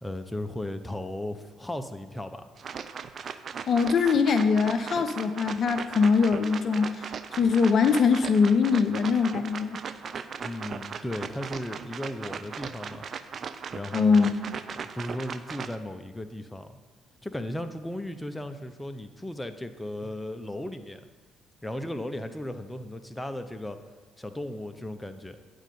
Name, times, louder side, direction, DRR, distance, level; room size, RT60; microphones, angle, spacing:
voice 1, 0.0-2.4 10.4-13.1 13.7-14.3 14.8-16.8 17.2-21.0 21.6-23.8 24.2-25.4, left 1 dB, 10° left, 8 dB, 0.6 m, -36 dB
sound 1, 2.6-15.8, right 6 dB, 50° right, 0.4 m, -38 dB
voice 2, 3.7-9.8 13.9-14.3, left 5 dB, 50° left, 9 dB, 0.5 m, -22 dB
9.0 x 3.8 x 7.0 m, 1.4 s
hypercardioid pair, 50°, 0 cm